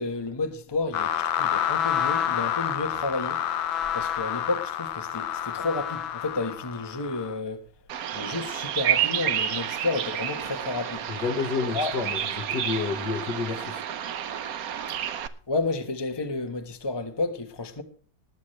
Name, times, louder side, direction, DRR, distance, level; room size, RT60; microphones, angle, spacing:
voice 1, 0.0-3.4 3.9-7.6 8.1-11.1 11.6-12.0 15.5-17.8, left 3 dB, 15° left, 1.1 m, -31 dB
sound 1, 0.9-7.4, left 10 dB, 85° left, 1.6 m, -28 dB
Bird vocalization bird call bird song, 7.9-15.3, right 10 dB, 60° right, 1.1 m, -30 dB
voice 2, 11.1-13.8, left 5 dB, 60° left, 1.9 m, -30 dB
19.5 x 9.6 x 3.2 m
omnidirectional pair, 2.1 m